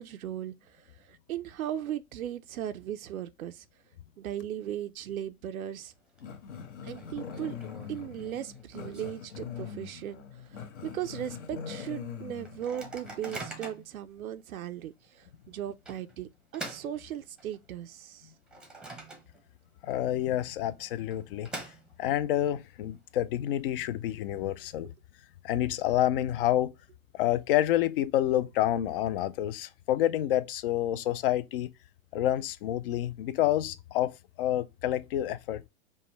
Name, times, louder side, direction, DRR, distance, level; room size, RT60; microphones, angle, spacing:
voice 1, 0.0-3.7 4.2-5.9 6.8-7.6 7.9-18.3, right 11 dB, 85° right, 0.5 m, -37 dB
Microwave oven, 5.8-6.2 6.5-6.6 6.9-10.0 10.4-10.5 10.8-11.1 11.6-11.7 12.4-14.0 14.6-14.7 15.9-17.7 18.1-19.6 19.9-20.0 20.9-22.3, right 2 dB, ahead, 0.7 m, -45 dB
Growling, 6.2-13.5, left 7 dB, 60° left, 1.0 m, -42 dB
voice 2, 19.8-21.5 22.0-24.9 25.4-26.7 27.1-31.7 32.1-35.6, left 12 dB, 45° left, 0.4 m, -28 dB
5.3 x 2.1 x 3.0 m
hypercardioid pair, 120°, 41 cm